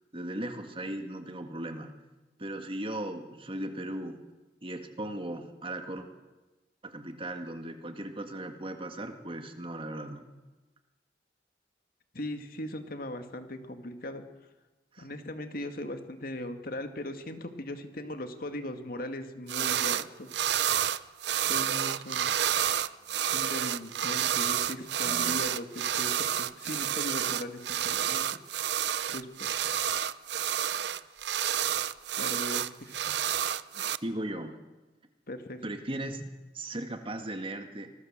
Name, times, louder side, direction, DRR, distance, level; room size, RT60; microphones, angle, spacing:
voice 1, 0.1-1.9 2.4-4.2 4.6-6.1 6.8-10.3 14.9-15.1 25.0-25.4 34.0-34.6 35.6-37.9, right 1 dB, 30° right, 6 dB, 2.0 m, -37 dB
voice 2, 12.1-14.2 15.0-20.3 21.5-22.3 23.3-28.3 29.1-29.6 32.2-33.1 35.3-35.6, left 1 dB, 55° left, 7 dB, 2.2 m, -39 dB
sound 1, 19.5-20.1 20.3-34.0, right 10 dB, 70° right, 0.7 m, -29 dB
26.0 x 20.0 x 7.5 m, 1.1 s
head